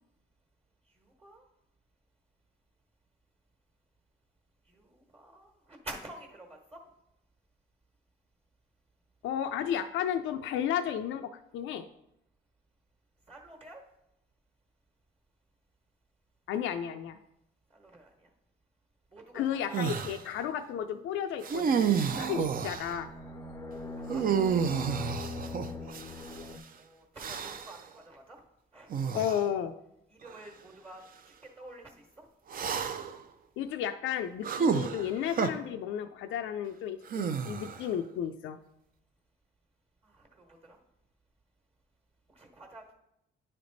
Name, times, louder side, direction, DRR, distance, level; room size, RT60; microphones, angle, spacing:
voice 1, 4.7-6.8 13.3-13.8 17.7-18.1 19.1-19.8 24.0-24.4 24.9-25.1 26.8-28.4 28.7-28.9 30.2-31.0 31.6-32.3 40.1-40.8 42.3-42.9, right 1 dB, 30° right, 2 dB, 1.3 m, -49 dB
voice 2, 9.2-11.9 16.5-17.2 19.3-23.1 29.1-29.7 33.6-38.6, left 9 dB, 75° left, 8 dB, 0.4 m, -33 dB
sound 1, 19.7-20.2 21.4-23.0 24.1-26.4 27.2-27.8 28.9-29.4 30.3-30.4 32.5-33.2 34.4-35.5 37.1-37.9, right 7 dB, 45° right, 0.5 m, -30 dB
sound 2, 22.1-26.6, left 3 dB, 15° left, 0.5 m, -41 dB
9.6 x 3.3 x 3.9 m, 0.81 s
cardioid pair, 90°, 20 cm